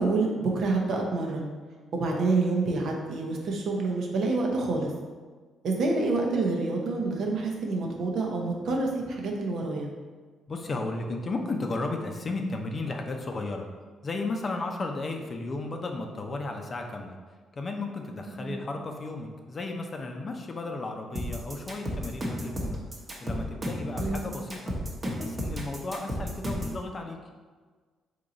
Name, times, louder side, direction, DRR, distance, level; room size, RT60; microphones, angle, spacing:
voice 1, 0.0-1.5 1.9-4.9 5.6-9.9 18.4-18.6 24.0-24.3, right 3 dB, 70° right, 0 dB, 0.7 m, -27 dB
voice 2, 10.5-13.7 14.0-17.2 17.5-22.8 23.2-24.7 25.0-27.2, left 2 dB, 40° left, 3 dB, 0.5 m, -34 dB
sound 1, 21.2-26.8, equal, 30° right, 0.9 m, -32 dB
3.7 x 2.9 x 3.8 m, 1.5 s
cardioid pair, 90°, 0 cm